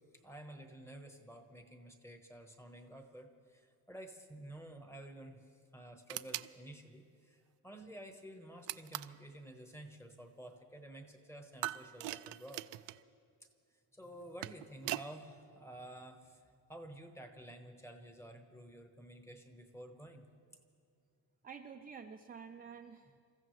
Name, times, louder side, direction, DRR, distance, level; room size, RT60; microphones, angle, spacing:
voice 1, 0.1-12.7 13.4-13.5 13.9-20.2, right 1 dB, 5° left, 5 dB, 1.1 m, -51 dB
sound 1, 6.1-6.5 8.7-9.2 11.6-13.0 14.1-15.1, right 17 dB, 85° right, 0.6 m, -41 dB
voice 2, 21.4-23.2, right 6 dB, 20° right, 4 dB, 0.4 m, -50 dB
29.0 x 15.0 x 3.2 m, 2.3 s
cardioid pair, 160°, 43 cm